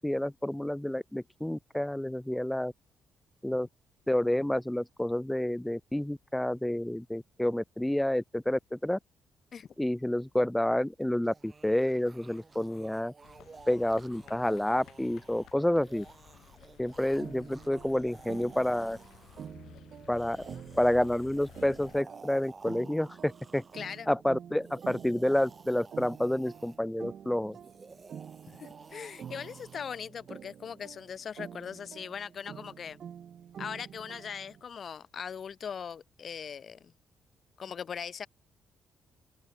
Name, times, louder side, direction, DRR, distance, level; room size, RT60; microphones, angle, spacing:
voice 1, 0.0-2.7 3.4-3.7 4.1-9.0 9.8-13.1 13.7-16.0 16.8-19.0 20.1-20.4 20.8-23.6 24.1-27.6, left 1 dB, 5° left, 0.7 m, -29 dB
sound 1, 11.0-19.5 20.0-24.0 24.6-26.8 27.5-30.0, right 4 dB, 30° right, 4.4 m, -54 dB
sound 2, 13.2-22.0, left 11 dB, 75° left, 4.9 m, -55 dB
sound 3, 17.2-34.6, right 8 dB, 60° right, 3.9 m, -48 dB
voice 2, 23.7-24.1 28.6-33.0 33.6-36.9 37.6-38.3, left 7 dB, 50° left, 0.9 m, -40 dB
open air
cardioid pair, 90°, 0 cm